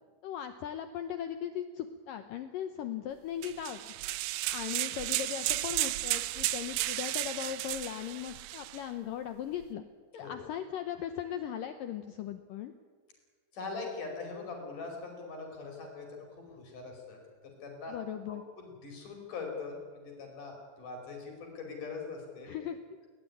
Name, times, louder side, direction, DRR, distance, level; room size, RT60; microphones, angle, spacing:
voice 1, 0.2-3.8 4.5-9.8 10.1-12.7 17.9-18.4 22.5-22.8, left 10 dB, 85° left, 8 dB, 1.9 m, -38 dB
sound 1, 3.4-8.8, right 17 dB, 85° right, 3.2 m, -33 dB
voice 2, 13.5-17.2 17.6-17.9 18.3-22.5, left 4 dB, 45° left, 1 dB, 6.2 m, -42 dB
21.0 x 19.0 x 9.9 m, 1.5 s
omnidirectional pair, 5.4 m